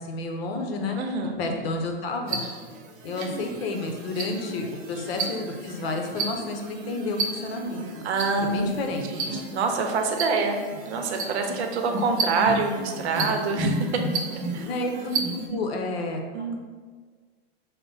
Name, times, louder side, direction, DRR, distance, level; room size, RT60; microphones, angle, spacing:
voice 1, 0.0-1.0 1.4-2.4 3.0-8.1 8.4-9.1 14.7-15.2 15.5-16.2, left 2 dB, 65° left, 3 dB, 0.8 m, -30 dB
voice 2, 1.0-1.6 8.0-8.8 9.1-14.0 14.3-14.8 15.5-15.6 16.3-16.6, right 4 dB, 85° right, 4 dB, 0.8 m, -26 dB
sound 1, 2.3-15.5, right 2 dB, 25° right, 0.5 m, -32 dB
5.2 x 2.1 x 3.9 m, 1.5 s
supercardioid pair, 145°, 32 cm